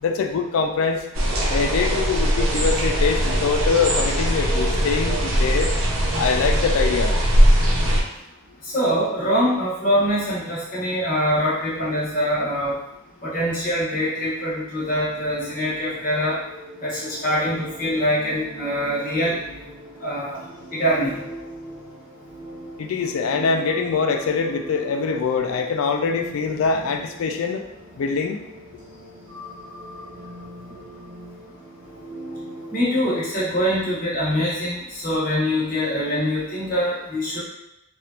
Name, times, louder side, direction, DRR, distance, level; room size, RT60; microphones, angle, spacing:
voice 1, 0.0-1.1 1.5-5.7 6.1-7.1 22.8-27.6 28.0-28.4, left 5 dB, 75° left, 5 dB, 0.4 m, -23 dB
sound 1, 1.1-8.0, equal, 65° right, 0.6 m, -20 dB
voice 2, 8.6-12.7 13.2-16.4 16.8-19.4 20.0-20.4 20.7-21.2 32.7-37.4, equal, 40° left, -8 dB, 1.2 m, -23 dB
sound 2, 15.0-33.3, right 1 dB, 25° right, 1.0 m, -40 dB
3.3 x 2.4 x 2.8 m, 0.85 s
head